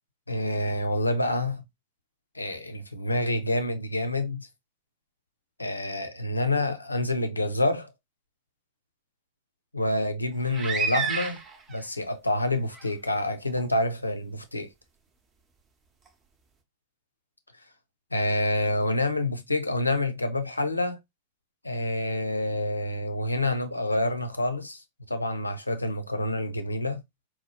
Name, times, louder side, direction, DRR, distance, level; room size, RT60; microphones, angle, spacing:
voice 1, 0.3-1.6 2.3-4.5 5.6-7.9 9.7-11.4 11.7-14.7 18.1-21.0 21.6-24.8 25.1-27.0, left 1 dB, 85° left, 0.5 m, -27 dB
sound 1, 10.4-11.8 12.7-12.9 13.6-13.7, right 5 dB, 25° right, 0.6 m, -30 dB
4.2 x 2.3 x 2.7 m
figure-of-eight pair, 90°, 0 cm